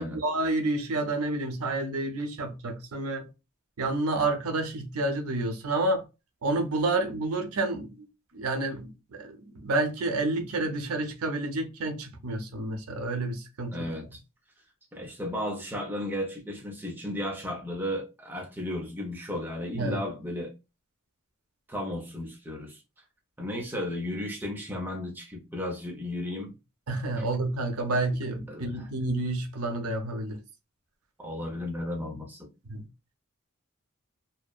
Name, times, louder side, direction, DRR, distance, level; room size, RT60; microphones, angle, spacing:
voice 1, 0.0-3.3 3.8-6.0 6.4-8.1 8.3-13.8 19.7-20.0 26.9-30.4 32.7-32.8, right 2 dB, 85° right, 0.6 m, -29 dB
voice 2, 13.7-14.2 14.9-20.5 21.7-22.8 23.4-26.5 27.2-27.3 28.5-28.9 31.2-32.5, left 1 dB, 10° right, 0.6 m, -34 dB
2.7 x 2.1 x 2.3 m
head